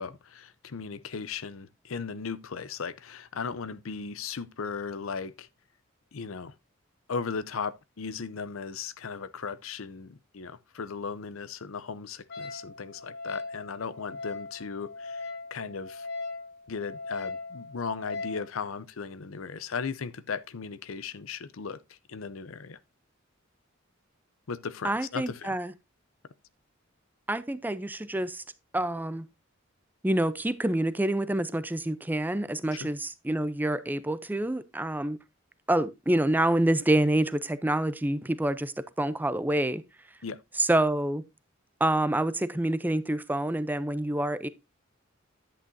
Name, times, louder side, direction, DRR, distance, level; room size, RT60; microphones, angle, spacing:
voice 1, 0.0-5.5 6.1-6.5 7.1-16.1 16.7-22.8 24.5-25.6 32.7-32.9 40.2-40.4, left 5 dB, 80° left, 0.6 m, -37 dB
Wind instrument woodwind instrument, 12.3-18.5, left 3 dB, 55° left, 1.4 m, -39 dB
voice 2, 24.8-25.7 27.3-28.4 28.7-29.3 30.0-35.2 35.7-39.8 40.6-41.2 41.8-44.5, right 1 dB, 10° right, 0.5 m, -27 dB
10.0 x 8.5 x 2.6 m
head